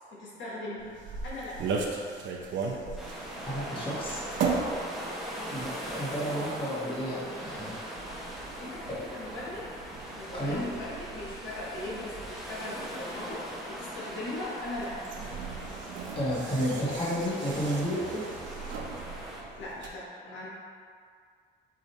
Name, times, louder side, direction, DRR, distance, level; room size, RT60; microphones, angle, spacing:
voice 1, 0.1-0.9 1.2-1.7 5.3-5.8 8.6-9.7 10.1-15.1 19.6-20.5, left 1 dB, 70° left, -6 dB, 1.2 m, -39 dB
sound 1, 0.8-19.9, right 4 dB, 70° right, 0.6 m, -38 dB
sound 2, 3.0-19.4, equal, ahead, 0.8 m, -40 dB
voice 2, 3.4-4.2 5.5-7.8 8.9-9.0 10.3-10.7 16.1-18.2, equal, 25° left, -7 dB, 1.3 m, -31 dB
4.8 x 2.7 x 4.1 m, 2.1 s
cardioid pair, 90°, 20 cm